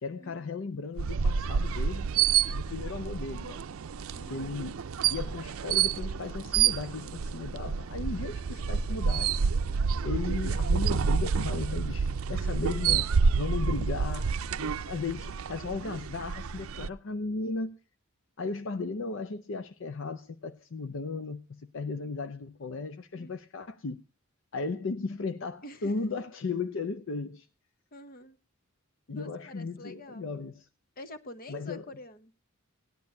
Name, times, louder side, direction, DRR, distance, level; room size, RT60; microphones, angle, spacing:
voice 1, 0.0-2.1 2.5-3.6 4.3-4.8 5.1-9.4 10.0-14.3 14.6-17.7 18.4-24.0 24.5-27.5 29.1-30.7 31.5-31.9, left 4 dB, 65° left, 0.6 m, -36 dB
sound 1, 1.0-16.9, right 6 dB, 80° right, 0.5 m, -29 dB
voice 2, 4.1-4.6 23.2-23.3 25.6-25.9 27.9-28.4 29.1-30.3 31.0-32.3, equal, 45° left, 0.9 m, -46 dB
17.5 x 10.5 x 2.6 m
head